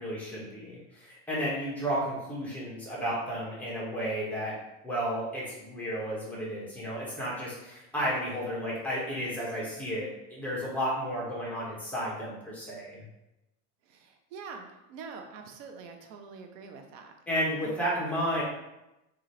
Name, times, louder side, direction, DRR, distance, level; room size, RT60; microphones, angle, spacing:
voice 1, 0.0-4.5 4.8-13.0 17.3-18.4, equal, 5° left, -6 dB, 1.5 m, -32 dB
voice 2, 13.9-17.1 17.6-17.7, right 5 dB, 80° right, 5 dB, 0.9 m, -45 dB
3.9 x 3.6 x 3.3 m, 0.93 s
supercardioid pair, 130°, 38 cm